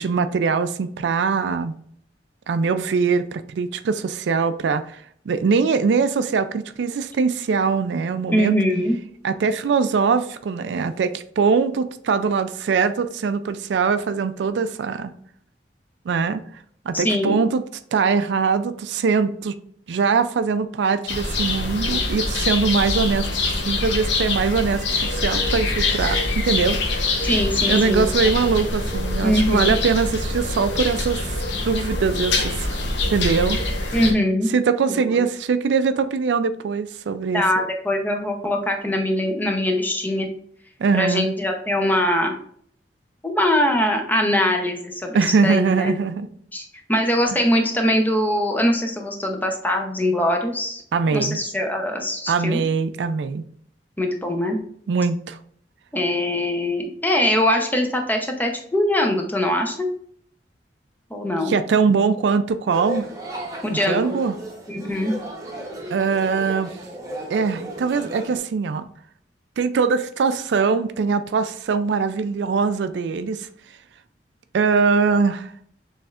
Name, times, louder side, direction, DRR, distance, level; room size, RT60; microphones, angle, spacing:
voice 1, 0.0-1.8 2.5-8.6 9.2-15.1 16.1-16.4 16.9-17.6 17.9-19.6 19.9-27.3 27.7-32.8 33.1-33.6 33.9-34.0 34.5-37.7 40.8-41.4 45.1-46.3 50.9-51.4 52.3-53.4 54.9-55.4 61.5-63.1 63.9-64.4 65.9-66.8 67.3-68.9 69.6-73.5 74.5-75.5, right 5 dB, 75° right, 11 dB, 0.4 m, -22 dB
voice 2, 8.3-9.0 16.9-17.4 27.2-28.5 29.2-29.8 33.9-34.5 34.9-35.2 37.3-40.3 40.9-42.3 43.2-45.9 46.5-50.8 51.1-52.6 54.0-54.6 55.9-59.9 61.1-61.5 63.6-64.2 64.7-65.2, left 1 dB, 10° left, 3 dB, 0.7 m, -22 dB
sound 1, 21.1-34.1, left 2 dB, 85° left, 0.8 m, -24 dB
sound 2, 62.7-68.4, right 1 dB, 20° right, 1.0 m, -35 dB
6.8 x 3.2 x 2.4 m, 0.63 s
head